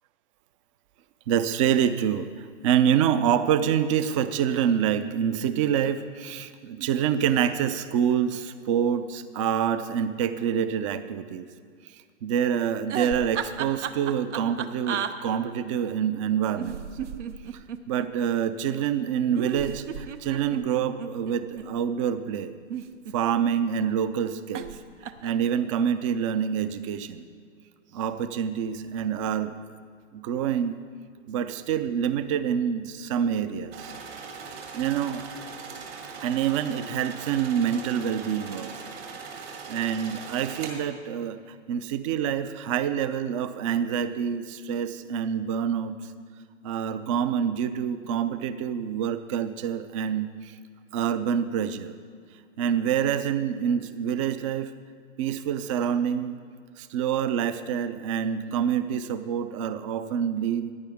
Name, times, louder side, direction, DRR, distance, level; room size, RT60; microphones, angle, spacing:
voice 1, 1.3-11.5 12.2-16.8 17.9-22.5 23.1-27.3 27.9-29.5 30.1-30.8 31.3-33.9 34.7-35.2 36.2-38.9 39.7-41.4 41.7-46.0 46.6-50.5 50.9-52.0 52.6-54.7 55.2-56.3 56.8-60.7, right 8 dB, 25° right, 12 dB, 0.4 m, -26 dB
sound 1, 12.8-15.1 16.5-18.1 19.3-21.7 22.5-23.5 24.5-24.8 25.0-25.4, right 9 dB, 70° right, 0.8 m, -33 dB
sound 2, 33.7-40.7, right 5 dB, 55° right, 2.2 m, -40 dB
15.0 x 10.0 x 3.6 m, 2.1 s
hypercardioid pair, 130°, 37 cm